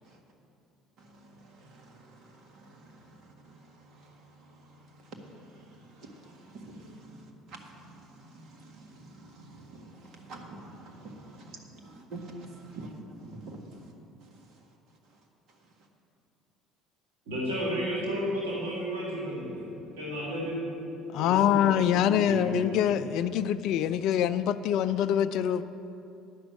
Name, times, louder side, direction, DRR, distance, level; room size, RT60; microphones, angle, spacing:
voice 1, 1.0-12.9 13.4-13.6, right 2 dB, 60° right, 2 dB, 1.7 m, -48 dB
voice 2, 17.3-20.6 21.2-22.9, equal, 90° right, -5 dB, 2.0 m, -33 dB
voice 3, 21.1-25.6, left 10 dB, 65° left, 12 dB, 0.3 m, -25 dB
10.5 x 6.2 x 8.0 m, 2.8 s
hypercardioid pair, 70°, 0 cm